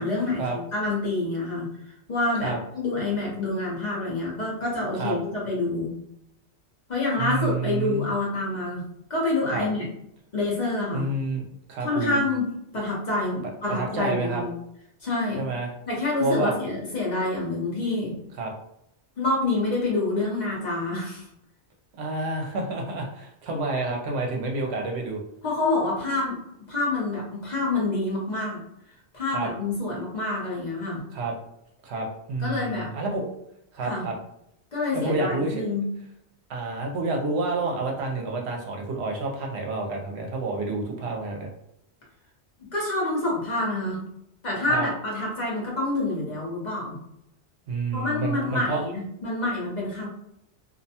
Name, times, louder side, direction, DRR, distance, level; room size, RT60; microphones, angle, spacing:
voice 1, 0.0-5.9 6.9-9.9 10.3-11.1 11.8-14.5 15.0-15.5 15.9-18.2 19.2-21.3 25.4-26.4 26.7-28.6 29.1-31.0 32.4-32.9 33.8-34.1 34.7-35.9 42.6-44.0 44.4-47.0 47.9-50.1, left 2 dB, 45° left, -4 dB, 0.8 m, -27 dB
voice 2, 7.2-8.1 9.5-9.7 10.9-12.2 13.7-14.4 15.4-15.7 16.2-16.5 18.4-18.5 22.0-25.2 29.3-29.5 31.1-31.3 31.8-33.2 33.7-34.1 34.9-35.6 36.5-41.5 44.7-44.8 47.7-48.8, right 3 dB, 75° right, 1 dB, 0.8 m, -29 dB
2.5 x 2.1 x 2.7 m, 0.78 s
omnidirectional pair, 1.1 m